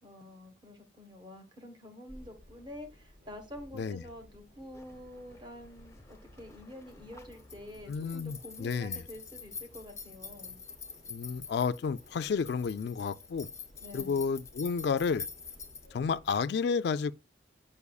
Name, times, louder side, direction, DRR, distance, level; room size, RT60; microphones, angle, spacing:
voice 1, 0.0-10.6 13.8-14.2, left 1 dB, 25° right, 1.3 m, -48 dB
sound 1, 2.1-16.4, equal, 50° right, 3.2 m, -58 dB
sound 2, 4.7-15.9, left 5 dB, 15° left, 0.6 m, -47 dB
voice 2, 7.9-9.0 11.1-13.5 13.9-15.3 15.9-17.1, left 5 dB, 60° left, 0.3 m, -31 dB
8.2 x 5.4 x 2.3 m
head